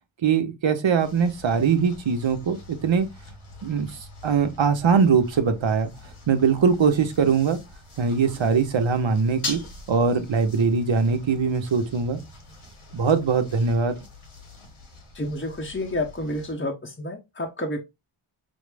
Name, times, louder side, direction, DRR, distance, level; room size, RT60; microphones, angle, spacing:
voice 1, 0.2-3.1 3.6-3.9 4.2-5.9 6.3-7.6 8.0-9.6 9.9-12.2 12.9-14.0, right 5 dB, 65° right, 0.9 m, -21 dB
sound 1, 1.0-16.5, left 3 dB, 85° left, 1.7 m, -43 dB
voice 2, 15.1-17.8, left 1 dB, 25° left, 0.7 m, -30 dB
6.1 x 2.0 x 3.3 m
wide cardioid pair, 95°, 49 cm